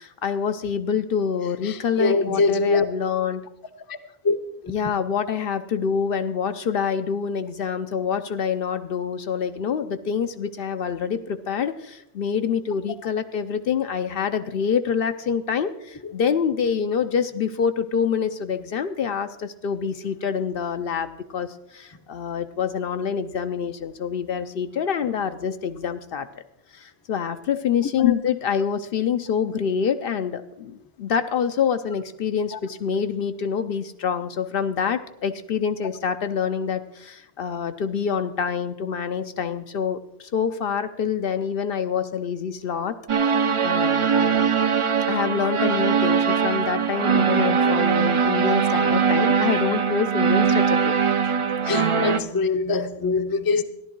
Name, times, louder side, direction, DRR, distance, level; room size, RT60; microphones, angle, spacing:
voice 1, 0.0-3.4 4.7-26.3 26.7-43.0 43.3-44.6 45.0-51.1, left 7 dB, 70° left, 0.8 m, -26 dB
voice 2, 1.6-2.9 3.9-4.0 4.2-4.3 4.6-4.7 16.0-16.1 28.0-28.1 51.6-53.6, left 4 dB, 25° left, 0.6 m, -23 dB
sound 1, 43.1-52.2, right 6 dB, 40° right, 0.4 m, -21 dB
14.0 x 11.0 x 4.5 m
omnidirectional pair, 1.0 m